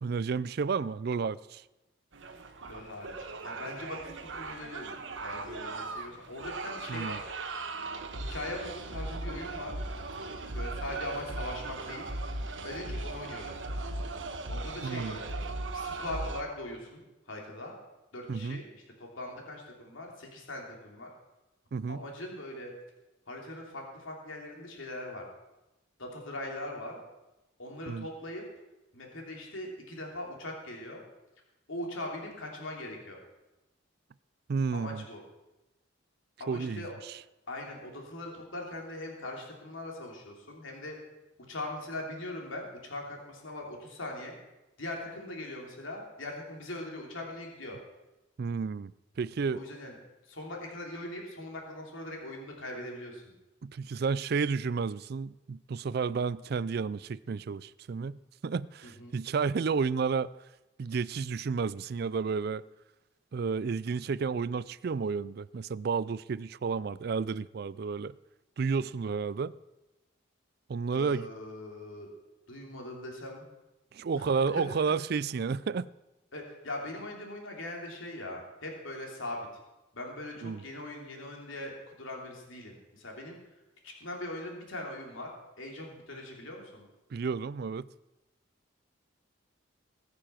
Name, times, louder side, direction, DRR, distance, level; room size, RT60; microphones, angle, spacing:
voice 1, 0.0-1.6 6.9-7.2 14.8-15.2 18.3-18.6 21.7-22.0 27.9-28.1 34.5-35.0 36.5-37.2 48.4-49.6 53.6-60.3 60.8-62.6 63.3-68.1 68.6-69.5 70.7-71.3 73.9-75.9 80.4-80.6 87.1-87.9, right 5 dB, 50° right, 0.4 m, -31 dB
sound 1, 2.1-16.4, right 2 dB, 70° right, 1.2 m, -38 dB
voice 2, 2.7-7.4 8.3-9.7 10.5-12.1 12.6-13.6 14.5-15.3 15.7-17.7 18.1-21.1 21.9-22.7 23.3-25.3 26.0-27.0 27.6-28.4 28.9-31.0 31.7-33.2 34.7-35.2 36.4-37.0 37.5-41.0 41.5-44.3 44.8-47.8 49.4-50.0 50.2-53.3 58.8-59.2 70.9-72.1 72.5-73.4 74.1-74.2 74.5-74.6 76.3-79.5 79.9-83.4 83.8-86.9, left 1 dB, 85° left, 3.0 m, -41 dB
20.5 x 6.8 x 5.8 m
head